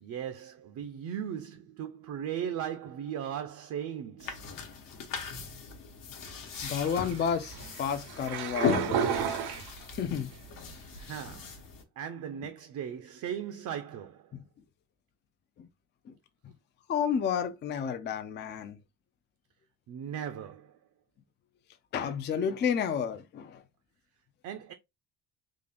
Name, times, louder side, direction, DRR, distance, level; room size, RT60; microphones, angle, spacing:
voice 1, 0.0-4.4 11.0-11.6 12.0-14.2 19.9-20.7 24.4-24.7, right 9 dB, 50° right, 0.5 m, -37 dB
sound 1, 4.2-11.8, left 5 dB, 60° left, 1.0 m, -38 dB
sound 2, 6.5-10.2 10.7-11.3, right 8 dB, 85° right, 0.7 m, -34 dB
voice 2, 6.6-9.2 9.9-10.3 15.6-15.7 16.9-18.8 21.9-23.6, left 7 dB, 30° left, 0.3 m, -31 dB
3.7 x 2.4 x 3.3 m
cardioid pair, 160°, 38 cm